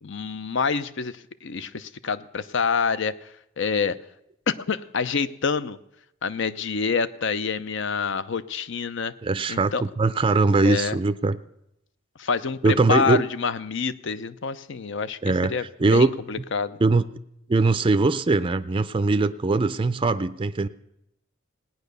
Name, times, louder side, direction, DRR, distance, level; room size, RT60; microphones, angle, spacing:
voice 1, 0.0-3.3 3.6-4.0 4.5-5.8 6.2-9.1 9.5-9.8 10.6-11.0 12.2-15.2 15.5-16.8, left 5 dB, 65° left, 14 dB, 0.6 m, -27 dB
voice 2, 9.2-11.4 12.6-13.2 15.2-16.1 16.8-17.1 17.5-20.7, right 3 dB, 25° right, 11 dB, 0.4 m, -21 dB
17.5 x 9.4 x 6.7 m, 0.81 s
head